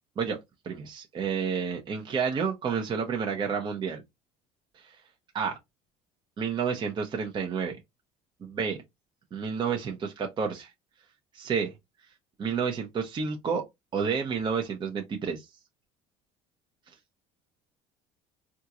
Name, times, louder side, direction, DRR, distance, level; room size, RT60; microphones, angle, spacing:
voice 1, 0.6-4.0 4.8-5.0 5.3-5.6 6.4-7.8 8.4-8.8 9.3-10.7 11.3-11.7 12.4-13.6 13.9-15.4, right 6 dB, 30° right, 0.7 m, -30 dB
3.5 x 2.4 x 2.9 m
supercardioid pair, 115°, 16 cm